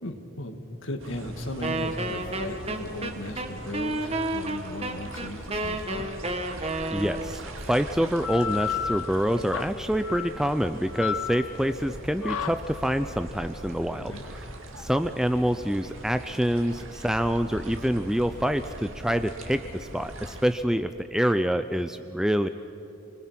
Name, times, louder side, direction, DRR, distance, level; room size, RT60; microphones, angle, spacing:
voice 1, 0.0-6.1 14.0-14.2, left 1 dB, 60° left, 6 dB, 1.9 m, -36 dB
sound 1, 1.0-20.5, right 1 dB, 60° right, 2.3 m, -42 dB
Wind instrument woodwind instrument, 1.6-7.4, right 2 dB, 25° right, 1.4 m, -31 dB
voice 2, 6.9-14.5 14.8-22.5, equal, ahead, 9 dB, 0.4 m, -26 dB
sound 2, 8.0-17.2, left 8 dB, 85° left, 1.1 m, -35 dB
29.0 x 21.0 x 6.0 m, 2.9 s
head